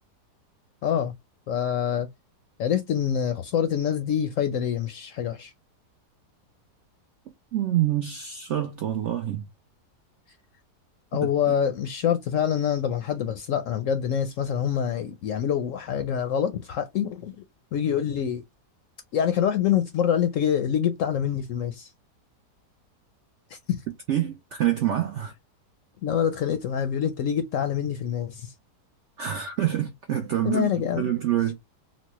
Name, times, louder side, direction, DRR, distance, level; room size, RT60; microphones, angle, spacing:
voice 1, 0.8-1.1 1.5-2.1 2.6-5.5 11.1-17.4 17.7-18.4 19.1-21.9 23.5-23.8 26.0-28.5 30.4-31.1, left 9 dB, 70° left, 0.8 m, -26 dB
voice 2, 7.5-9.4 24.1-25.3 29.2-30.7 30.9-31.5, right 12 dB, 70° right, 0.6 m, -26 dB
4.0 x 2.1 x 2.9 m
omnidirectional pair, 1.8 m